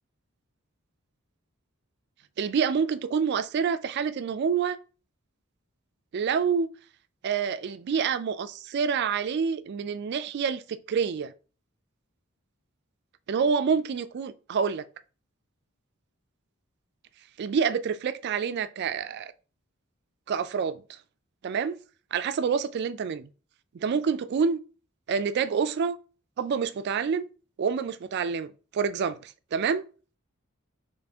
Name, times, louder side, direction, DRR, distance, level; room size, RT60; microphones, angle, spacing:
voice 1, 2.4-4.8 6.1-6.7 7.2-11.3 13.3-14.9 17.4-19.3 20.3-21.0 21.4-21.8 22.1-23.3 23.7-24.6 25.1-26.0 26.4-27.2 27.6-29.9, right 6 dB, 55° right, 0.3 m, -27 dB
4.2 x 3.0 x 3.4 m
head